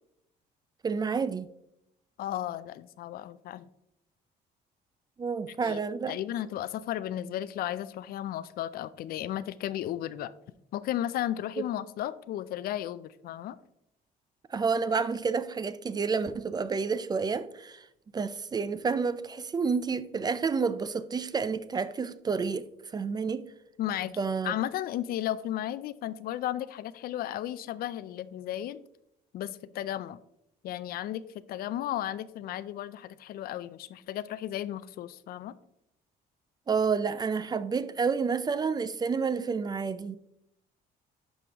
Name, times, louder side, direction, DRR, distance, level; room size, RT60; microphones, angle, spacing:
voice 1, 0.8-1.5 5.2-6.1 14.5-17.9 18.1-22.7 22.9-23.4 24.2-24.5 36.7-40.2, right 5 dB, 25° right, 0.4 m, -29 dB
voice 2, 2.2-3.7 5.5-5.8 6.1-10.3 10.7-13.6 23.8-24.1 24.4-28.8 29.3-30.2 30.6-35.5, left 12 dB, 65° left, 0.4 m, -34 dB
11.0 x 5.1 x 2.9 m
cardioid pair, 110°, 17 cm